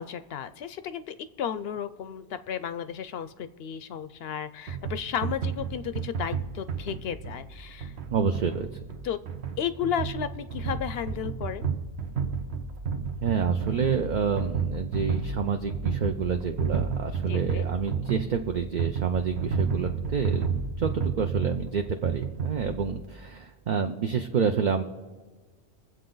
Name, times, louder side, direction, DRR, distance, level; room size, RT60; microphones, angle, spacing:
voice 1, 0.0-7.9 9.0-9.2 9.6-11.7 17.3-17.7, left 8 dB, 70° left, 12 dB, 0.7 m, -33 dB
sound 1, 4.7-23.1, right 5 dB, 70° right, 1.2 m, -32 dB
voice 2, 8.1-8.8 13.2-20.5 20.8-24.8, right 6 dB, 50° right, 5 dB, 0.6 m, -28 dB
22.5 x 7.7 x 3.9 m, 1.3 s
omnidirectional pair, 1.1 m